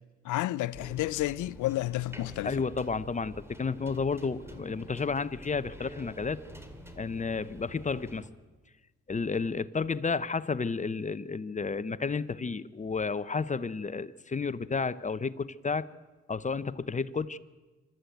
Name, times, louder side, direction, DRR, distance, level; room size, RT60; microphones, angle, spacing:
voice 1, 0.2-2.5, left 16 dB, 80° left, 0.6 m, -31 dB
sound 1, 0.7-8.3, equal, 10° right, 2.5 m, -48 dB
voice 2, 2.4-6.4 6.9-8.3 9.1-15.9 16.3-17.4, left 4 dB, 25° left, 0.8 m, -31 dB
25.0 x 13.0 x 9.2 m
cardioid pair, 90°, 30 cm